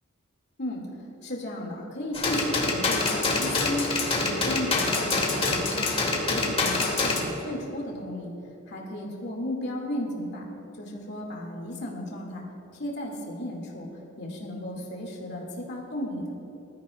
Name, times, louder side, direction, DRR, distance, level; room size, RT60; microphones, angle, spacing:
voice 1, 1.2-3.9 4.1-5.9 6.2-8.3 8.7-10.5 10.8-12.4 12.7-13.9 14.2-16.2, left 1 dB, 60° left, -1 dB, 2.4 m, -34 dB
sound 1, 2.1-7.2, left 3 dB, 30° left, 1.7 m, -26 dB
20.0 x 13.0 x 2.5 m, 2.9 s
head